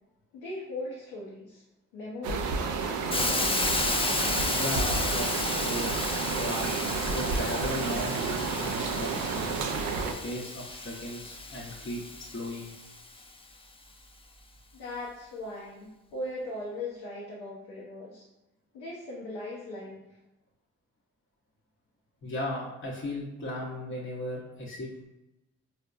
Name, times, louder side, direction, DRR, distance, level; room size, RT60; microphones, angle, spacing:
voice 1, 0.3-1.6 1.9-3.7 14.7-18.3 18.7-20.0, left 2 dB, 85° left, -4 dB, 0.6 m, -39 dB
sound 1, 2.2-10.1, right 4 dB, 70° right, 0.5 m, -31 dB
Hiss, 3.1-13.0, left 3 dB, 15° left, 0.4 m, -33 dB
voice 2, 4.4-6.8 7.1-12.0 12.3-12.7 22.2-25.0, left 1 dB, 40° left, -4 dB, 0.8 m, -36 dB
4.4 x 2.1 x 2.4 m, 0.99 s
hypercardioid pair, 40°, 32 cm